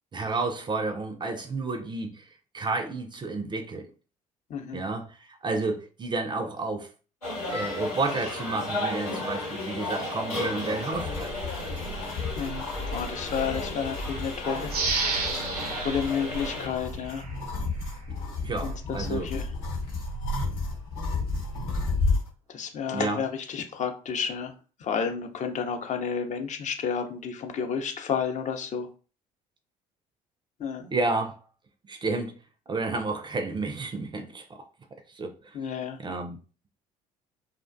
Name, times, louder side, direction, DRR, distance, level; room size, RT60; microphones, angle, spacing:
voice 1, 0.1-2.3 2.5-3.9 4.7-6.9 7.5-11.7 18.1-18.2 18.4-19.3 22.9-23.2 30.9-31.4 31.9-32.4 32.7-34.7 35.1-35.6 36.0-36.4, right 3 dB, 25° right, 0.4 m, -31 dB
voice 2, 4.5-4.8 12.4-14.7 15.8-17.3 18.6-19.5 22.5-24.5 24.8-28.9 30.6-30.9 35.5-36.0, left 6 dB, 40° left, 0.6 m, -31 dB
sound 1, 7.2-16.7, left 2 dB, 90° left, 1.2 m, -34 dB
sound 2, 10.9-22.3, left 3 dB, 70° left, 1.0 m, -32 dB
sound 3, 14.7-17.4 17.8-17.9, right 4 dB, 85° right, 0.4 m, -31 dB
2.3 x 2.1 x 2.4 m
figure-of-eight pair, 55°, 19 cm